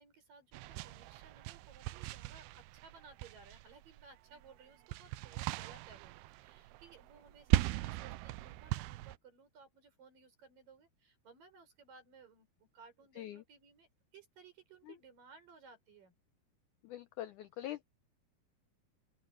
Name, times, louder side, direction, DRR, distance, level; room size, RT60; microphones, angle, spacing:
voice 1, 0.0-16.1, right 5 dB, 60° right, 7.3 m, -59 dB
sound 1, 0.5-4.1 4.4-9.2, right 17 dB, 90° right, 2.6 m, -38 dB
voice 2, 16.8-17.8, left 13 dB, 85° left, 1.7 m, -43 dB
open air
omnidirectional pair, 4.4 m